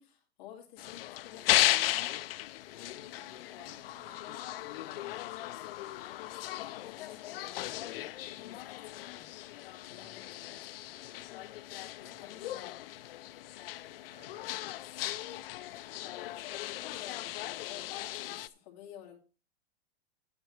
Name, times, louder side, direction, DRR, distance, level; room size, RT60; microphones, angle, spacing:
voice 1, 0.0-1.8 6.4-9.3 9.9-10.9 12.1-12.8 16.7-17.9 18.1-19.2, left 10 dB, 40° left, 2.4 m, -52 dB
sound 1, 0.8-18.5, left 15 dB, 60° left, 0.5 m, -36 dB
voice 2, 2.9-5.5 9.8-10.2 12.0-12.4 14.0-14.7 15.8-16.2, right 3 dB, 80° right, 3.8 m, -61 dB
9.6 x 8.0 x 4.6 m
supercardioid pair, 175°, 33 cm